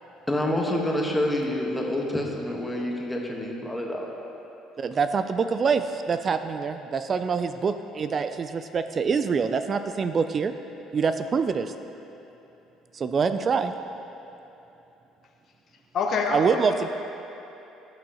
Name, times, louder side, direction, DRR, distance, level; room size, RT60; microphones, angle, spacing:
voice 1, 0.3-4.1, left 1 dB, 10° left, -1 dB, 1.2 m, -27 dB
voice 2, 4.8-10.5 10.9-11.7 12.9-13.7 16.3-16.9, right 5 dB, 35° right, 9 dB, 0.3 m, -25 dB
voice 3, 15.9-16.9, left 4 dB, 50° left, 0 dB, 0.9 m, -27 dB
16.0 x 6.1 x 2.9 m, 3.0 s
cardioid pair, 110°, 0 cm